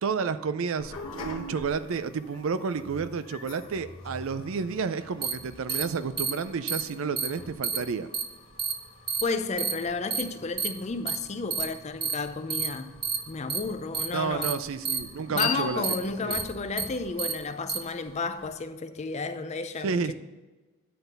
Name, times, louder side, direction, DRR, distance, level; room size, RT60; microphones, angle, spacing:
voice 1, 0.0-8.1 14.1-16.4 19.8-20.1, right 5 dB, 65° right, 0.4 m, -31 dB
sound 1, 0.8-18.6, left 5 dB, 70° left, 1.2 m, -43 dB
sound 2, 5.2-5.3 5.7-5.8 6.2-6.3 6.7-6.8 7.2-7.3 7.6-7.8 8.1-8.2 8.6-8.7 9.1-9.2 9.6-9.7 10.1-10.2 10.6-10.7 11.1-11.2 11.5-11.6 12.0-12.1 12.5-12.7 13.0-13.2 13.5-13.6 13.9-14.1 14.4-14.5 14.9-15.0 15.4-15.5 15.8-16.0 16.3-16.4 16.8-16.9 17.2-17.3 17.7-17.8, right 6 dB, 20° right, 0.6 m, -28 dB
voice 2, 9.2-12.9 13.3-14.5 15.3-20.1, left 4 dB, 30° left, 0.5 m, -32 dB
9.3 x 4.0 x 6.6 m
head